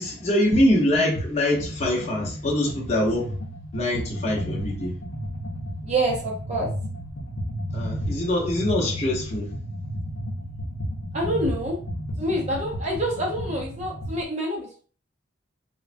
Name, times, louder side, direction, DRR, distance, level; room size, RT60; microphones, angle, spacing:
voice 1, 0.0-3.3 3.7-4.9 7.7-9.5, left 1 dB, 35° left, -3 dB, 0.8 m, -24 dB
sound 1, 0.5-0.7 0.9-14.2, equal, 75° left, 0.7 m, -33 dB
voice 2, 5.8-6.7 11.1-11.8 12.2-14.8, right 1 dB, 35° right, -2 dB, 0.5 m, -27 dB
3.3 x 2.1 x 2.5 m, 0.42 s
head